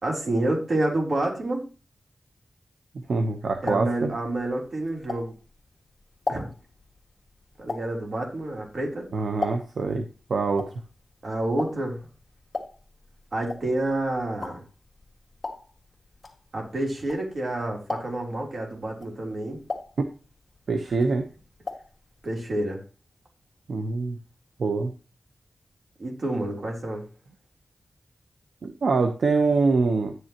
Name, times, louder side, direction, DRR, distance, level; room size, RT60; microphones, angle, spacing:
voice 1, 0.0-1.7 3.6-5.3 6.3-6.5 7.6-9.1 11.2-12.0 13.3-14.6 16.5-19.6 22.2-22.8 26.0-27.1, right 1 dB, 55° right, 0 dB, 3.6 m, -28 dB
sound 1, 3.1-5.6 6.0-9.9 10.2-17.5 17.8-18.4 18.9-20.6 20.9-22.0 22.2-22.3 22.6-22.7, left 3 dB, 50° left, 2.0 m, -36 dB
voice 2, 3.1-4.1 9.1-10.7 20.7-21.3 23.7-24.2 24.6-24.9 28.6-30.1, right 4 dB, 75° right, 6 dB, 1.0 m, -24 dB
11.0 x 9.3 x 3.0 m, 0.34 s
wide cardioid pair, 90°, 0 cm